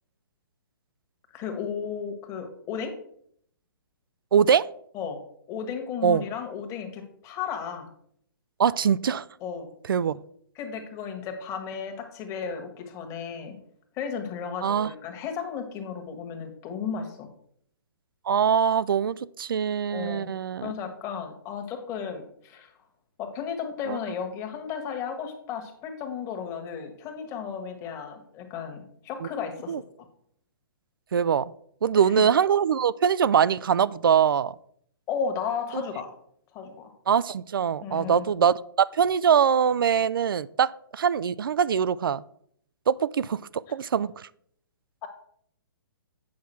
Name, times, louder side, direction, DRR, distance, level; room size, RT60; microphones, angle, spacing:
voice 1, 1.3-2.9 4.9-5.2 5.5-7.9 9.4-9.7 10.5-13.6 13.9-17.3 19.9-20.3 20.6-22.7 23.2-29.8 32.0-32.3 35.1-36.1 36.5-36.9 37.8-38.3 45.0-45.1, left 6 dB, 25° left, 5 dB, 1.5 m, -34 dB
voice 2, 4.3-4.7 6.0-6.2 8.6-9.3 9.9-10.2 14.6-14.9 18.3-20.7 23.9-24.0 29.2-29.3 29.7-29.8 31.1-31.5 31.8-34.5 35.7-35.8 37.1-38.5 38.9-42.2 42.9-44.3, right 7 dB, 65° right, 20 dB, 0.4 m, -23 dB
8.7 x 5.6 x 4.4 m, 0.66 s
figure-of-eight pair, 130°, 12 cm